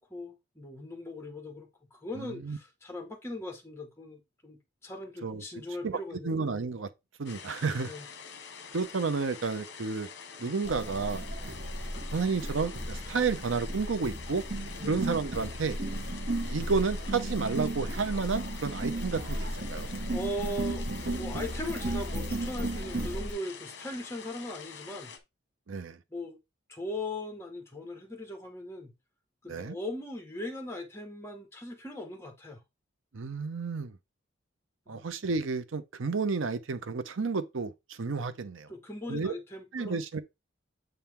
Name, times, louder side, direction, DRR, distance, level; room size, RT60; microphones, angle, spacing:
voice 1, 0.1-6.3 7.8-8.1 14.8-15.0 20.1-20.8 21.1-25.1 26.1-26.4 26.7-28.9 29.4-32.6 34.9-35.0 38.7-39.9, left 1 dB, 10° left, 1.5 m, -39 dB
voice 2, 2.2-2.6 5.2-6.9 7.2-7.9 8.7-10.1 10.4-14.4 14.9-15.8 16.4-19.9 25.7-26.0 29.5-29.8 33.1-34.0 34.9-38.7 39.1-39.3 39.7-40.2, right 4 dB, 70° right, 0.6 m, -31 dB
sound 1, 7.2-25.2, left 6 dB, 55° left, 1.1 m, -46 dB
sound 2, 10.6-23.3, right 1 dB, 50° right, 1.7 m, -35 dB
8.0 x 4.3 x 3.6 m
head